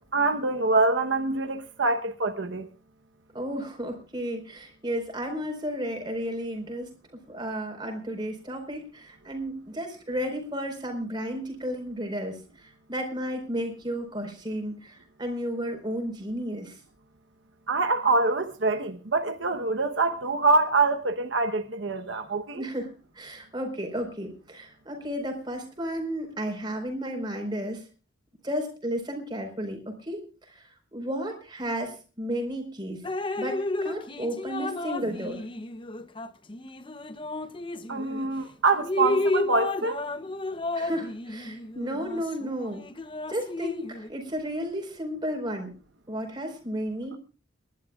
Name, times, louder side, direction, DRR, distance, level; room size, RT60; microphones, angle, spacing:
voice 1, 0.1-2.7 17.7-22.7 37.9-40.1, right 3 dB, 70° right, 1.0 m, -25 dB
voice 2, 3.3-6.9 7.3-16.7 22.5-27.8 28.4-30.2 30.5-30.6 30.9-33.0 33.4-35.4 40.7-42.8 43.3-45.7 46.1-47.2, equal, 25° right, 4.4 m, -33 dB
Drip, 33.0-38.3 38.7-44.1, left 2 dB, 25° left, 0.7 m, -32 dB
30.0 x 12.0 x 2.4 m
head